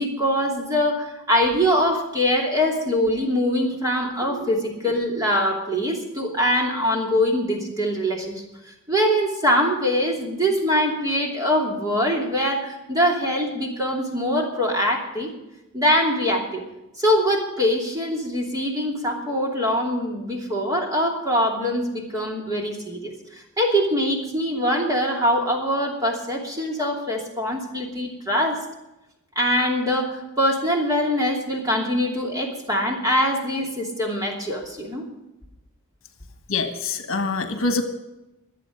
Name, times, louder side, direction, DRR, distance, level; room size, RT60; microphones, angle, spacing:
voice 1, 0.0-8.4 8.9-15.3 15.7-16.6 17.0-28.6 29.3-35.0, equal, 15° right, 0 dB, 2.8 m, -23 dB
voice 2, 36.5-37.8, left 3 dB, 60° left, 7 dB, 1.5 m, -25 dB
24.0 x 8.4 x 5.2 m, 0.94 s
head